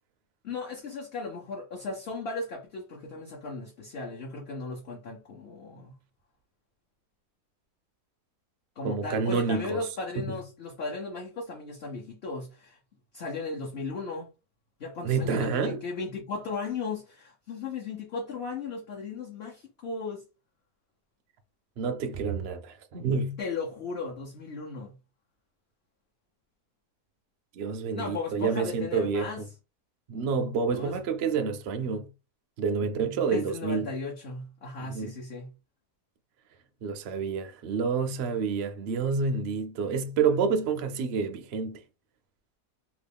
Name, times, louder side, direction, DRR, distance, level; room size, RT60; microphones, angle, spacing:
voice 1, 0.4-5.9 8.8-12.8 13.1-14.3 14.8-20.2 23.4-24.9 27.9-29.4 30.8-30.9 32.8-35.5, left 3 dB, 55° left, 0.8 m, -36 dB
voice 2, 8.8-9.9 10.1-10.4 15.0-15.8 21.8-23.4 27.5-29.5 30.1-32.1 32.6-33.9 34.8-35.1 36.8-41.8, right 5 dB, 65° right, 0.6 m, -28 dB
2.9 x 2.4 x 3.4 m
omnidirectional pair, 1.7 m